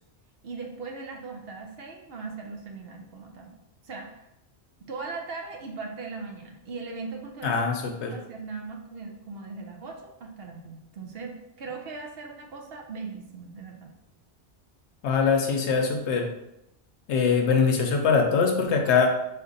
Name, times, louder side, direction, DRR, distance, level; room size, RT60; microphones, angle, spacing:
voice 1, 0.4-4.3 4.8-13.9, right 4 dB, 60° right, 2 dB, 0.8 m, -39 dB
voice 2, 7.4-8.1 15.0-16.3 17.1-19.1, left 5 dB, 75° left, 3 dB, 0.9 m, -23 dB
4.3 x 2.5 x 4.0 m, 0.85 s
omnidirectional pair, 1.2 m